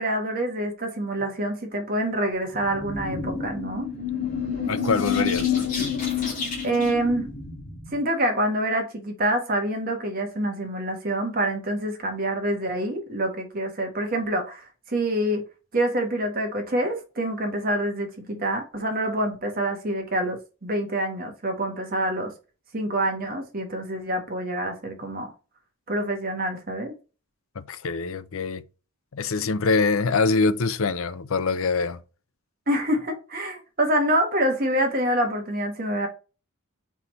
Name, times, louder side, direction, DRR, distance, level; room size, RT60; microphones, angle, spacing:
voice 1, 0.0-3.9 6.6-7.3 7.9-15.4 15.7-22.3 22.7-25.3 25.9-26.9 32.7-36.1, right 1 dB, 40° right, 1.4 m, -26 dB
sound 1, 2.5-8.0, left 6 dB, 35° left, 2.4 m, -28 dB
voice 2, 4.7-6.0 27.6-28.6 29.1-32.0, left 4 dB, 70° left, 0.5 m, -24 dB
4.7 x 4.2 x 5.3 m
head